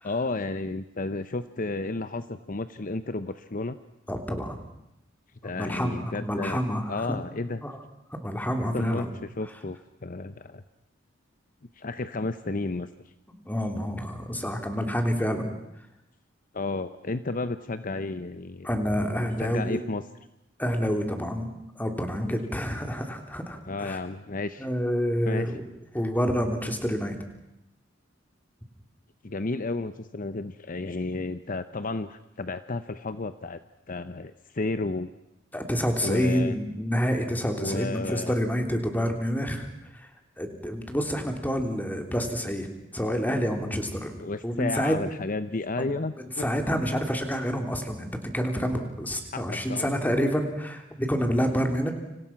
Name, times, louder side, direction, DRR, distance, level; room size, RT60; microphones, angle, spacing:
voice 1, 0.0-3.8 5.4-6.6 6.9-7.6 8.7-9.1 9.4-10.6 11.8-12.9 16.5-18.7 19.4-20.0 23.7-24.7 25.2-25.5 29.2-33.6 33.9-35.1 36.0-36.5 37.6-38.4 44.2-46.4 49.3-49.9, left 3 dB, 45° left, 11 dB, 0.8 m, -32 dB
voice 2, 4.1-4.6 5.5-7.2 7.6-7.7 8.2-9.1 13.3-15.5 18.6-19.8 20.6-24.0 24.6-25.5 25.9-27.2 35.5-39.7 39.9-40.1 40.4-42.7 42.9-45.0 45.8-45.9 46.4-51.9, equal, 10° left, 4 dB, 3.3 m, -28 dB
29.5 x 26.5 x 5.9 m, 0.90 s
head